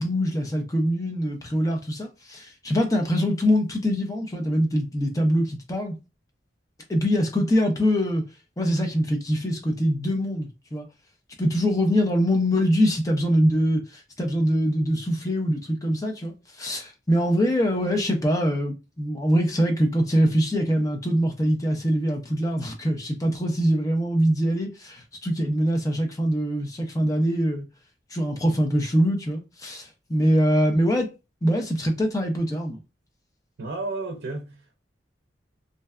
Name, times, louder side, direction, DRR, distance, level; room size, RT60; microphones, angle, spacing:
voice 1, 0.0-5.9 6.9-8.2 8.6-10.8 11.4-27.7 28.1-31.1 31.4-32.8, equal, 20° left, 0.5 m, -23 dB
voice 2, 33.6-34.8, right 3 dB, 85° right, 0.5 m, -32 dB
2.6 x 2.1 x 2.3 m
head